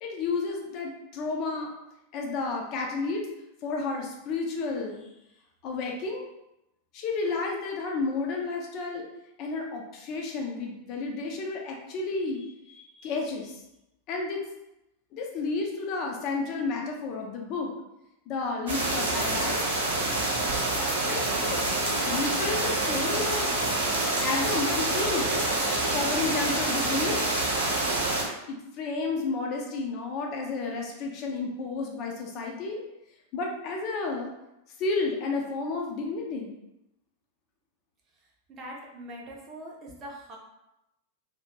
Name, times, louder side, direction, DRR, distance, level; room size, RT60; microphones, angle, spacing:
voice 1, 0.0-1.7 2.1-3.3 3.6-5.0 5.6-6.2 6.9-9.1 9.4-13.6 14.1-14.5 15.1-17.7 18.3-19.6 21.1-21.3 22.1-23.5 24.2-25.3 25.9-27.2 28.5-32.8 33.3-34.3 34.8-36.5, left 3 dB, 40° left, 0 dB, 0.5 m, -31 dB
sound 1, 18.7-28.2, right 2 dB, 60° right, 0.8 m, -27 dB
voice 2, 38.5-40.4, right 1 dB, 25° right, -2 dB, 0.5 m, -42 dB
2.4 x 2.0 x 2.9 m, 0.89 s
figure-of-eight pair, 90°, 0 cm